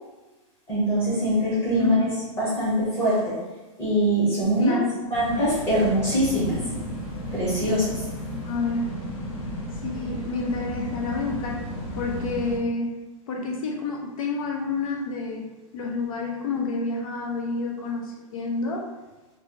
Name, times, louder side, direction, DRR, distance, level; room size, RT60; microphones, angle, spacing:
voice 1, 0.7-2.1 2.4-3.4 3.8-4.8 5.1-6.6 7.3-8.0, equal, 15° left, -9 dB, 1.2 m, -23 dB
voice 2, 1.8-2.1 4.6-4.9 8.4-9.0 9.8-11.6 11.9-12.9 13.3-18.9, left 3 dB, 70° left, 1 dB, 0.6 m, -29 dB
sound 1, 5.1-12.6, equal, 50° left, 0.9 m, -33 dB
3.3 x 2.6 x 3.0 m, 1.1 s
supercardioid pair, 170°, 18 cm